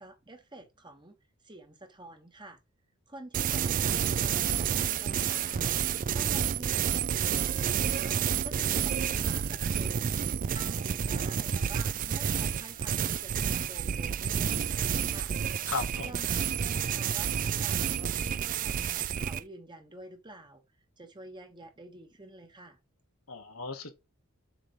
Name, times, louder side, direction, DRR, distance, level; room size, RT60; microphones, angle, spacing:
voice 1, 0.0-2.6 3.1-5.8 6.1-10.2 10.5-15.3 16.0-20.6 21.0-22.8, right 2 dB, 20° right, 1.2 m, -48 dB
sound 1, 3.3-19.4, right 8 dB, 40° right, 0.3 m, -29 dB
voice 2, 15.7-16.1 23.3-23.9, left 4 dB, 80° left, 1.7 m, -36 dB
7.3 x 3.2 x 5.2 m
head